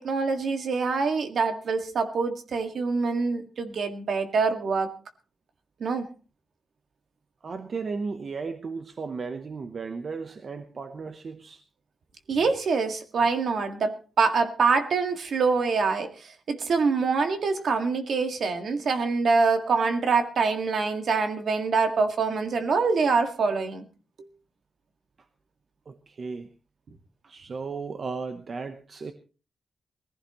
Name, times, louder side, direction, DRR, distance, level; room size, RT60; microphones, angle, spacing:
voice 1, 0.0-4.9 5.8-6.1 12.3-16.1 16.5-23.9, right 4 dB, 60° right, 6 dB, 1.9 m, -25 dB
voice 2, 7.4-11.6 25.9-26.5 27.2-29.1, right 4 dB, 40° right, 8 dB, 0.9 m, -35 dB
20.5 x 15.5 x 3.0 m, 0.34 s
wide cardioid pair, 175°, 0 cm